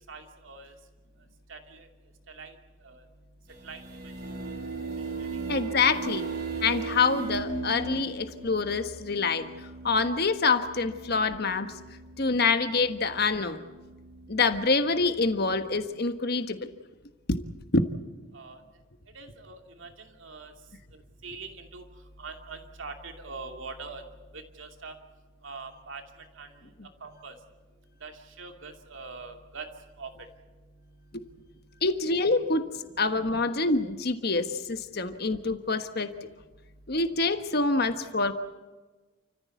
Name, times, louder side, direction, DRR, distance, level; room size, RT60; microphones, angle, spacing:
voice 1, 0.1-0.7 1.5-1.9 2.3-2.5 2.8-3.0 3.6-3.8 5.2-5.3 18.3-18.6 19.1-20.5 21.2-21.8 22.2-24.0 24.3-25.0 25.4-26.0 26.3-26.5 27.0-27.3 28.0-29.7 30.0-30.1 32.5-32.9, right 4 dB, 65° right, 4 dB, 2.6 m, -43 dB
sound 1, 3.5-15.8, right 4 dB, 50° right, 3.7 m, -38 dB
voice 2, 5.5-6.2 6.6-9.5 9.8-11.7 12.2-13.6 14.3-16.6 17.3-17.4 17.7-17.8 31.8-32.7 33.0-36.1 36.9-38.3, left 4 dB, 50° left, 9 dB, 1.4 m, -26 dB
29.5 x 15.0 x 8.4 m, 1.2 s
head